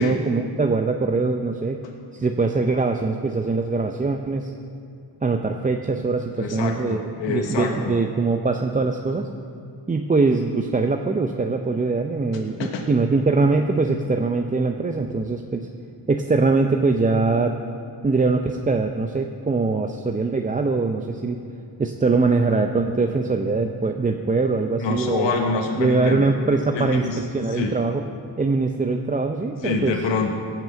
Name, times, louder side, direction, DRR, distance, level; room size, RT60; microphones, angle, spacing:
voice 1, 0.0-1.8 2.1-4.5 5.2-9.3 9.9-15.7 16.1-17.6 18.0-21.4 21.8-25.3 25.8-28.0 28.4-30.0, right 3 dB, 20° right, 4 dB, 0.5 m, -22 dB
voice 2, 6.4-8.0 12.6-12.9 24.8-26.3 26.7-27.2 27.5-27.8 29.6-30.3, left 4 dB, 90° left, 2 dB, 1.3 m, -26 dB
16.5 x 6.1 x 7.6 m, 2.5 s
cardioid pair, 95°, 43 cm